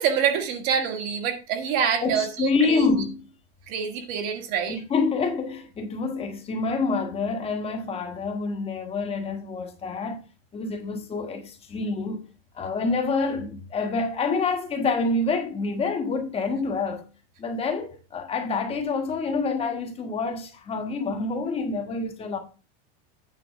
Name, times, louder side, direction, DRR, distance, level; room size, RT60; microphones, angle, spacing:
voice 1, 0.0-2.9 3.7-4.8, right 7 dB, 50° right, 1.8 m, -26 dB
voice 2, 2.0-3.2 4.7-10.2 10.5-12.2 12.5-17.1 17.4-22.4, left 4 dB, 20° left, 1.4 m, -27 dB
9.0 x 4.4 x 6.1 m
supercardioid pair, 165°, 31 cm